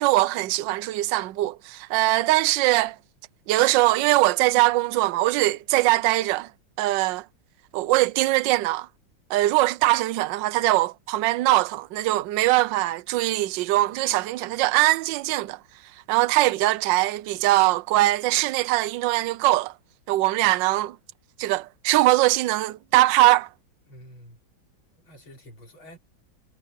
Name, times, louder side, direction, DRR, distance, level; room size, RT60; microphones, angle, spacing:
voice 1, 0.0-3.0 3.5-6.5 6.8-7.2 7.7-8.9 9.3-15.6 16.1-19.7 20.1-21.0 21.4-23.5, right 17 dB, 70° right, 1.3 m, -21 dB
voice 2, 23.9-24.4 24.9-26.0, equal, 75° left, 5.9 m, -48 dB
omnidirectional pair, 2.2 m